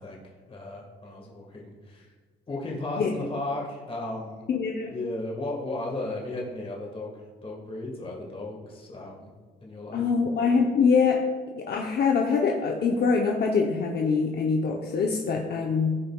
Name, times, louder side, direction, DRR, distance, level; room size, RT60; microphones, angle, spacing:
voice 1, 0.0-2.1 2.5-4.5 4.9-9.3 9.6-10.0, left 2 dB, 30° left, -2 dB, 1.6 m, -35 dB
voice 2, 4.5-4.9 9.9-11.2 11.5-16.0, left 5 dB, 55° left, 0 dB, 0.8 m, -24 dB
15.5 x 5.1 x 2.3 m, 1.5 s
cardioid pair, 90°, 20 cm